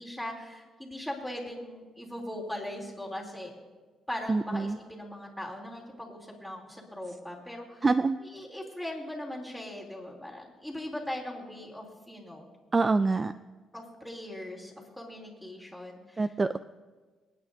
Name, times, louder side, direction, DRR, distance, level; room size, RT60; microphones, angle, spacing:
voice 1, 0.0-3.5 4.1-7.9 8.2-12.5 13.7-16.3, left 1 dB, ahead, -2 dB, 3.0 m, -40 dB
voice 2, 4.3-4.8 7.8-8.2 12.7-13.3 16.2-16.6, right 3 dB, 25° right, 12 dB, 0.3 m, -25 dB
26.5 x 9.4 x 2.7 m, 1.4 s
cardioid pair, 90°, 0 cm